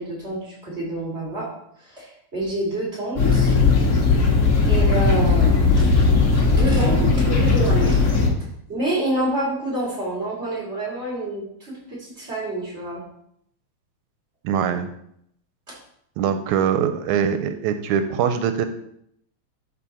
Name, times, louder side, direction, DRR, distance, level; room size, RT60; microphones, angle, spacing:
voice 1, 0.0-1.5 1.8-3.6 4.0-4.1 4.7-8.1 8.7-13.0 15.7-15.8, right 1 dB, 25° right, -5 dB, 2.7 m, -28 dB
sound 1, 3.2-8.3, left 4 dB, 50° left, 0.9 m, -17 dB
voice 2, 14.4-14.9 16.2-18.7, right 8 dB, 85° right, 9 dB, 2.0 m, -22 dB
11.5 x 4.1 x 4.3 m, 0.72 s
omnidirectional pair, 3.4 m